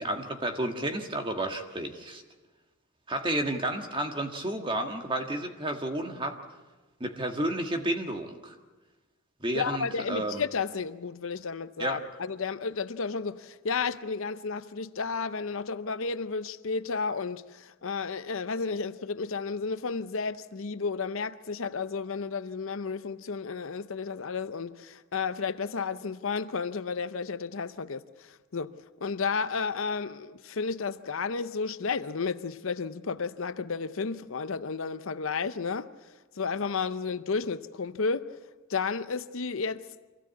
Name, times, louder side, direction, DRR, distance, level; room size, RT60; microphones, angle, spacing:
voice 1, 0.0-2.2 3.1-6.4 7.0-8.5 9.4-10.4 11.8-12.0, right 1 dB, 25° right, 1.6 m, -31 dB
voice 2, 9.5-28.7 29.0-35.9 36.4-38.3 38.7-39.9, left 5 dB, 65° left, 0.7 m, -32 dB
24.5 x 16.0 x 8.4 m
head